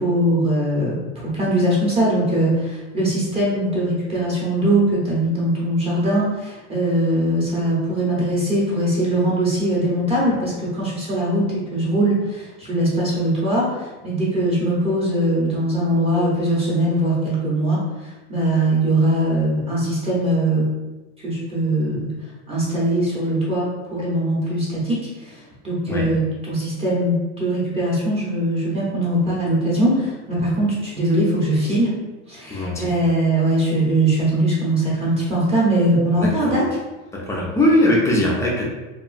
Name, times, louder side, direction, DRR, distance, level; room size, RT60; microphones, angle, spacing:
voice 1, 0.0-20.7 21.2-22.1 22.5-31.9 32.3-36.6, right 1 dB, 15° right, -7 dB, 0.7 m, -21 dB
voice 2, 32.5-32.9 36.2-36.5 37.1-38.6, left 1 dB, 10° left, -4 dB, 0.4 m, -20 dB
2.9 x 2.3 x 2.4 m, 1.2 s
supercardioid pair, 135°, 36 cm